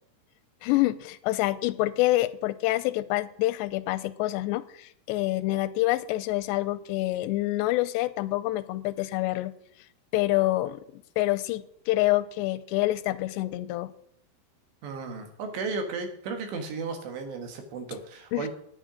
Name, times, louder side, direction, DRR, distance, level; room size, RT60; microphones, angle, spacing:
voice 1, 0.6-9.5 10.1-13.9 18.3-18.5, left 17 dB, 90° left, 14 dB, 2.8 m, -27 dB
voice 2, 14.8-18.5, right 4 dB, 85° right, 5 dB, 3.8 m, -34 dB
10.0 x 9.5 x 5.0 m, 0.69 s
omnidirectional pair, 4.9 m